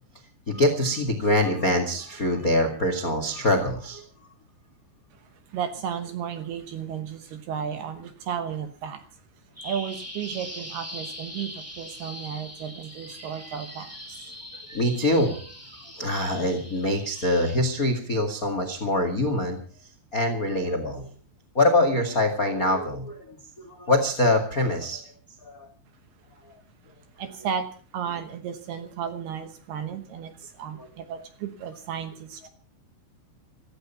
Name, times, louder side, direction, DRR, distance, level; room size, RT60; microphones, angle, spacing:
voice 1, 0.5-4.0 14.7-15.5 16.0-19.6 20.1-21.0 21.5-23.4 23.6-25.0 25.4-25.7, left 1 dB, 70° left, 7 dB, 0.8 m, -24 dB
voice 2, 5.5-9.1 9.6-14.3 27.2-32.5, right 8 dB, 70° right, 9 dB, 2.6 m, -34 dB
Bird vocalization bird call bird song, 9.6-17.6, equal, 20° right, 0.3 m, -41 dB
16.0 x 15.0 x 5.7 m, 0.41 s
omnidirectional pair, 5.7 m